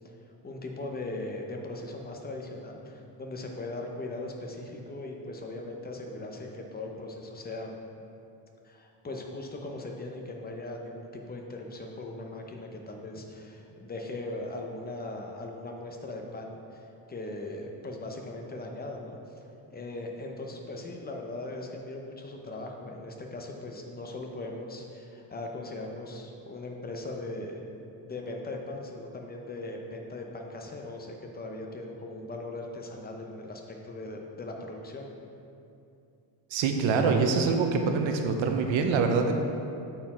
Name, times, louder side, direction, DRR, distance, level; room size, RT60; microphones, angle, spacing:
voice 1, 0.4-7.7 8.6-19.4 19.7-27.6 28.0-35.1, left 2 dB, 20° left, 1 dB, 0.8 m, -39 dB
voice 2, 36.5-39.3, right 5 dB, 85° right, 4 dB, 0.8 m, -25 dB
8.2 x 4.5 x 4.3 m, 2.7 s
cardioid pair, 120°, 44 cm